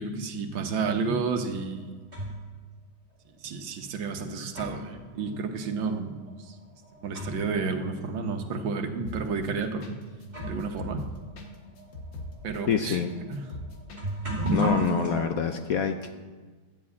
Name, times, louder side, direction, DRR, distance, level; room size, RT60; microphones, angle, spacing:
voice 1, 0.0-2.0 3.4-6.6 7.0-9.9 10.5-11.0 12.4-13.4, right 4 dB, 80° right, 5 dB, 1.8 m, -31 dB
sound 1, 1.5-2.5 3.4-3.5 4.2-7.6 7.9-8.0 8.8-9.0 9.8-9.9 10.2-15.2, right 1 dB, 25° right, 3.7 m, -34 dB
sound 2, 9.0-9.5 9.8-10.0 10.2-13.1 13.3-14.6 14.8-14.9, left 1 dB, 85° left, 2.1 m, -39 dB
voice 2, 12.7-13.1 14.5-16.1, left 7 dB, 65° left, 7 dB, 0.9 m, -26 dB
11.5 x 7.3 x 8.4 m, 1.4 s
omnidirectional pair, 2.1 m